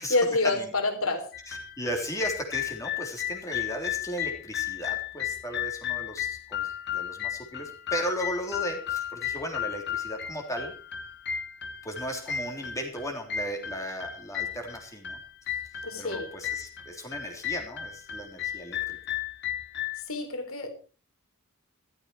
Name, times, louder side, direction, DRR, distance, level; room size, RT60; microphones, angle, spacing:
voice 1, 0.1-1.3 15.8-16.3 20.0-20.7, left 2 dB, 70° left, 6 dB, 3.6 m, -27 dB
sound 1, 1.3-20.0, left 10 dB, 55° left, 2.1 m, -34 dB
voice 2, 1.5-10.7 11.8-15.2 15.5-15.6 16.0-19.0, equal, 15° left, 2 dB, 3.5 m, -36 dB
14.5 x 13.5 x 4.7 m, 0.38 s
head